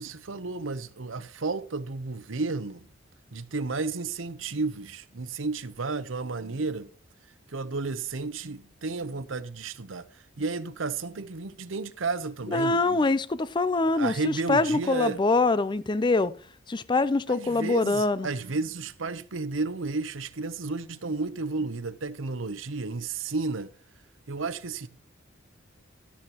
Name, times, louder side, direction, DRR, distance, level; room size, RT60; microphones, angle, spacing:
voice 1, 0.0-2.9 3.3-6.9 7.5-13.1 13.9-15.2 17.3-23.7 24.3-24.9, right 3 dB, 85° right, 0.8 m, -32 dB
voice 2, 12.5-16.3 16.7-18.3, left 3 dB, 25° left, 0.4 m, -24 dB
12.5 x 11.5 x 3.0 m
head